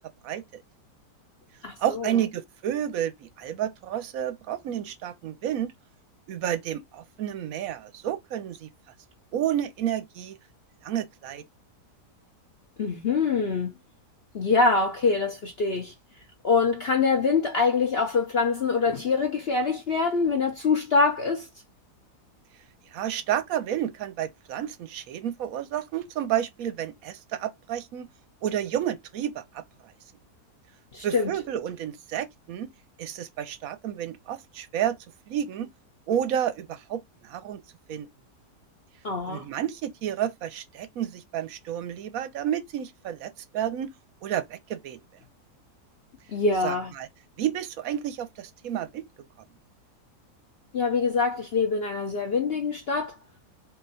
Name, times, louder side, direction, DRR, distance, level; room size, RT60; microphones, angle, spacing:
voice 1, 0.2-0.6 1.8-5.7 6.3-8.7 9.3-10.4 10.8-11.4 22.9-28.1 28.4-29.6 31.0-32.7 33.0-35.0 35.3-35.7 36.1-37.6 37.9-38.1 39.3-43.9 44.2-45.0 46.6-47.1 47.4-49.0, right 10 dB, 65° right, 0.9 m, -30 dB
voice 2, 1.6-2.1 12.8-13.7 14.3-15.9 16.4-21.5 30.9-31.3 39.0-39.5 46.3-46.9 50.7-53.2, left 4 dB, 50° left, 0.7 m, -24 dB
3.7 x 2.7 x 4.1 m
omnidirectional pair, 1.8 m